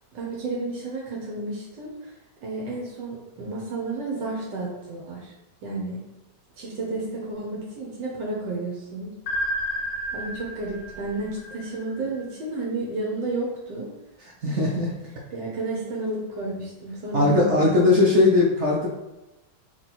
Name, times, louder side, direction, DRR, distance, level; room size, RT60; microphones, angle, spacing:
voice 1, 0.1-2.1 2.4-5.3 5.6-6.0 6.6-9.1 10.1-13.9 14.5-14.6 15.3-17.9, right 2 dB, 75° right, -3 dB, 1.5 m, -31 dB
sound 1, 9.3-12.2, equal, 65° left, 1.3 m, -31 dB
voice 2, 14.4-14.9 17.1-18.9, left 2 dB, 60° right, -2 dB, 0.7 m, -19 dB
3.7 x 3.1 x 4.1 m, 0.95 s
omnidirectional pair, 2.0 m